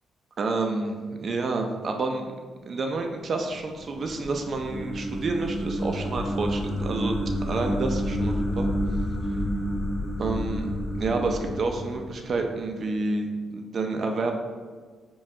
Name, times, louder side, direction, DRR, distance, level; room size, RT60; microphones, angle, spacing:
voice 1, 0.4-2.3 2.7-7.2 7.5-8.7 10.2-14.4, right 3 dB, 55° right, 4 dB, 0.5 m, -29 dB
sound 1, 3.4-12.7, equal, 55° left, 1.2 m, -29 dB
5.2 x 2.3 x 2.8 m, 1.5 s
cardioid pair, 65°, 0 cm